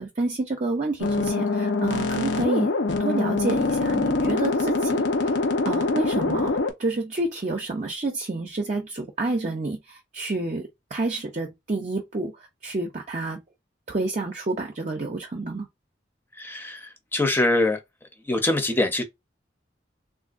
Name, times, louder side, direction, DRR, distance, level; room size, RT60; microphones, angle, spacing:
voice 1, 0.0-2.7 3.0-5.0 5.7-10.6 10.9-12.3 12.6-13.4 13.9-15.7, right 2 dB, 40° right, 0.6 m, -29 dB
sound 1, 1.0-6.7, left 3 dB, 80° left, 0.8 m, -24 dB
voice 2, 16.4-17.8 18.3-19.0, left 2 dB, 10° left, 0.7 m, -23 dB
3.5 x 2.5 x 2.4 m
head